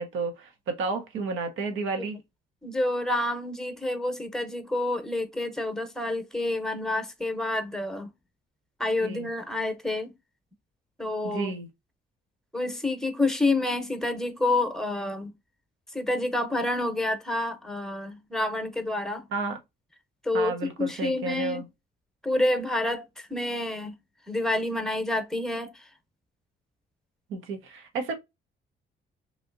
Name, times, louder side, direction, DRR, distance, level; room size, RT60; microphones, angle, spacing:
voice 1, 0.0-2.2 9.0-9.3 11.2-11.7 19.3-19.6 20.3-21.6 27.3-28.1, right 4 dB, 80° right, 0.8 m, -31 dB
voice 2, 2.6-8.1 8.8-10.1 11.0-11.5 12.5-15.3 15.9-19.3 20.2-21.6 22.2-23.9 24.3-25.9, left 2 dB, ahead, 0.8 m, -28 dB
3.2 x 2.7 x 2.5 m
cardioid pair, 90°, 20 cm